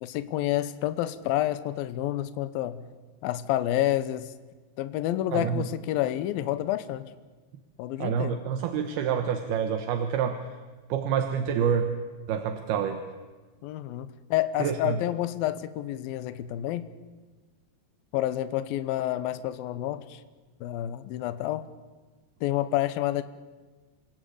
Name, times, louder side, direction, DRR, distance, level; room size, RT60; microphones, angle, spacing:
voice 1, 0.0-2.9 3.2-4.3 4.8-7.1 7.8-8.4 13.6-16.8 18.1-20.2 20.6-21.7 22.4-23.2, left 13 dB, 75° left, 13 dB, 2.6 m, -29 dB
voice 2, 5.3-5.6 8.0-10.4 10.9-11.9 12.3-13.0 14.6-15.0, right 8 dB, 75° right, 7 dB, 3.1 m, -27 dB
27.5 x 16.5 x 8.6 m, 1.3 s
omnidirectional pair, 4.6 m